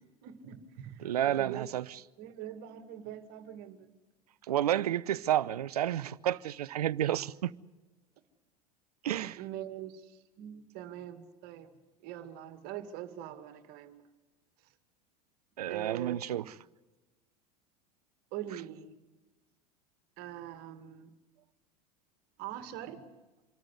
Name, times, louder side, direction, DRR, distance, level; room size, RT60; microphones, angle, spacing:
voice 1, 0.2-1.7 2.2-3.9 9.4-11.7 12.0-14.0 15.7-16.2 18.3-18.9 20.2-21.1 22.4-23.0, right 11 dB, 55° right, 2.2 m, -43 dB
voice 2, 1.0-1.8 4.5-7.5 9.0-9.4 15.6-16.4, right 11 dB, 75° right, 0.7 m, -30 dB
26.5 x 13.5 x 9.7 m
hypercardioid pair, 80°, 20 cm